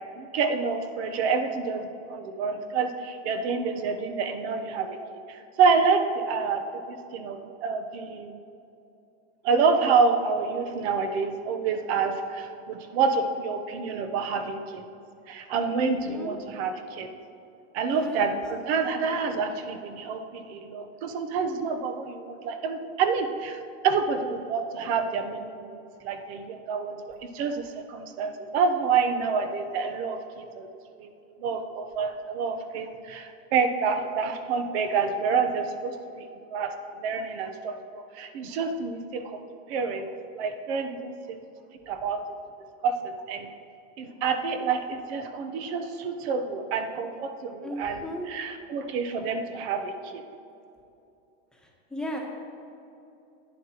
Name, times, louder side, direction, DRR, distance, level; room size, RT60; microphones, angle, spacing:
voice 1, 0.2-8.4 9.4-14.9 15.3-17.1 17.7-23.6 23.8-30.7 31.0-31.1 31.4-39.4 39.7-40.1 40.3-41.4 41.9-42.2 42.8-43.5 44.0-50.2, right 5 dB, 70° right, 6 dB, 0.9 m, -28 dB
voice 2, 15.8-16.4 17.9-18.4 47.6-48.3 51.5-52.2, equal, ahead, -2 dB, 1.1 m, -37 dB
11.5 x 9.4 x 2.9 m, 2.8 s
supercardioid pair, 145°, 33 cm